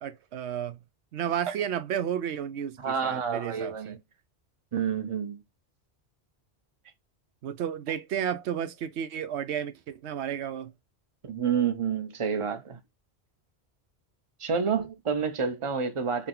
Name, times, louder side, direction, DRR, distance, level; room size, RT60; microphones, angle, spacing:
voice 1, 0.0-0.8 1.1-4.0 7.4-10.7, right 9 dB, 85° right, 0.9 m, -32 dB
voice 2, 2.8-4.0 4.7-5.4 11.2-12.8 14.4-16.3, right 6 dB, 35° right, 0.6 m, -29 dB
3.8 x 2.9 x 3.6 m
omnidirectional pair, 1.1 m